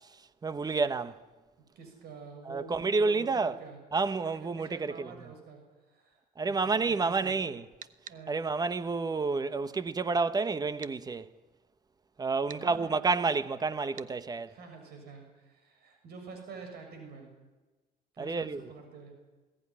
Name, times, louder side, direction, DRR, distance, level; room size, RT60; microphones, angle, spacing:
voice 1, 0.4-1.2 2.5-3.6 3.9-5.1 6.4-7.6 8.3-11.3 12.2-14.5 18.2-18.6, right 4 dB, 25° right, 1.1 m, -29 dB
voice 2, 1.7-3.8 4.2-6.2 6.4-7.3 8.1-8.3 12.5-13.2 14.5-17.3 18.1-19.1, right 5 dB, 70° right, 6.6 m, -48 dB
sound 1, 7.8-8.2 10.8-11.0 12.5-12.7 14.0-14.1, right 9 dB, 50° right, 1.0 m, -46 dB
21.5 x 17.0 x 10.0 m
cardioid pair, 110°, 17 cm